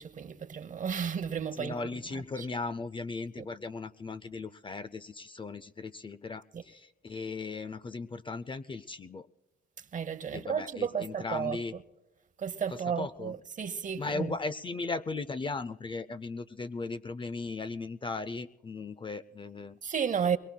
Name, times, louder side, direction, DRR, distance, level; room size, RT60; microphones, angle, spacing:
voice 1, 0.0-1.8 2.1-2.5 3.4-3.5 6.5-6.6 9.9-11.8 12.4-14.4 19.8-20.4, right 7 dB, 40° right, 0.8 m, -33 dB
voice 2, 1.5-9.3 10.3-11.7 13.0-13.3 14.0-19.8, left 3 dB, 25° left, 0.4 m, -37 dB
23.0 x 22.0 x 2.3 m
cardioid pair, 90°, 20 cm